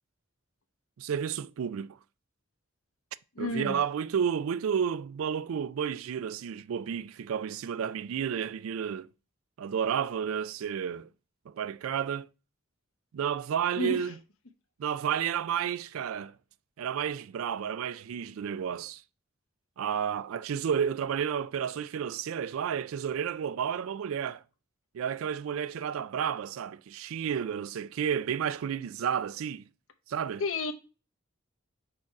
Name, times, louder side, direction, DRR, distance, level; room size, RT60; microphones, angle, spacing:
voice 1, 1.0-2.0 3.4-9.1 9.6-11.1 11.5-12.3 13.1-14.1 14.8-16.3 16.8-19.0 19.8-24.4 24.9-29.6 30.1-30.4, right 8 dB, 85° right, 0.3 m, -31 dB
voice 2, 3.3-3.8 13.8-14.1 30.4-30.7, left 3 dB, 85° left, 0.9 m, -31 dB
4.9 x 4.5 x 4.8 m
head